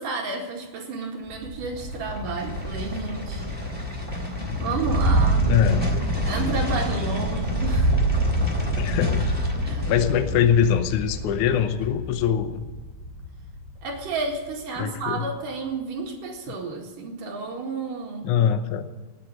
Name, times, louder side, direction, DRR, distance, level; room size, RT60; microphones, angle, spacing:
voice 1, 0.0-3.5 4.6-5.5 6.2-8.0 8.6-8.7 9.6-9.9 13.8-18.3, right 4 dB, 60° right, 1 dB, 3.3 m, -31 dB
sound 1, 1.3-14.5 14.8-14.9, equal, 5° left, 2.7 m, -26 dB
voice 2, 5.5-5.8 8.8-9.3 9.9-12.6 14.8-15.3 18.2-18.9, left 8 dB, 80° left, 8 dB, 1.7 m, -23 dB
19.0 x 8.2 x 7.6 m, 1.3 s
omnidirectional pair, 4.8 m